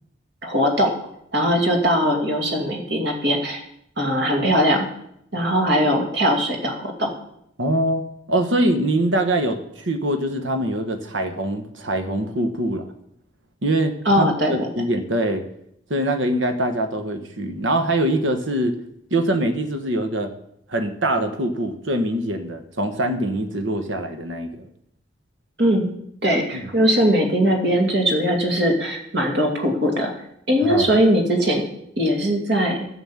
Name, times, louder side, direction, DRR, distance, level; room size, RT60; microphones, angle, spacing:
voice 1, 0.4-0.9 1.3-3.6 4.0-4.9 5.3-7.1 14.0-14.7 25.6-25.9 26.2-30.1 30.5-31.7 32.0-32.9, equal, 60° right, 1 dB, 2.5 m, -20 dB
voice 2, 7.6-8.0 8.3-12.9 13.6-15.4 15.9-18.8 19.1-20.3 20.7-24.7 26.5-26.7 30.6-30.9, right 1 dB, 75° right, 7 dB, 1.3 m, -23 dB
11.0 x 7.9 x 7.3 m, 0.74 s
head